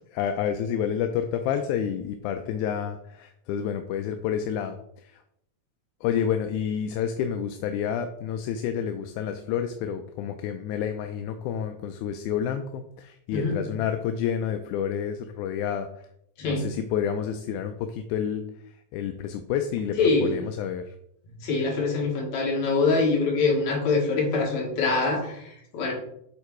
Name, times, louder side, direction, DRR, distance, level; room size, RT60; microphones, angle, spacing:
voice 1, 0.1-5.2 6.0-16.1 16.4-21.0, left 8 dB, 85° left, 7 dB, 2.0 m, -29 dB
voice 2, 20.0-20.4 21.4-25.9, left 3 dB, 70° left, -1 dB, 3.0 m, -24 dB
8.0 x 3.7 x 4.7 m, 0.74 s
omnidirectional pair, 3.5 m